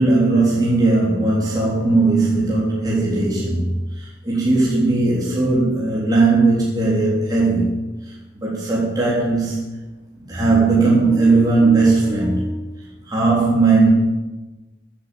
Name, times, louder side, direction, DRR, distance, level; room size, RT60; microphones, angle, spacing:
voice 1, 0.0-7.8 8.0-9.6 10.2-12.6 13.1-13.9, right 3 dB, 20° right, -6 dB, 3.6 m, -18 dB
15.5 x 10.0 x 7.3 m, 1.1 s
head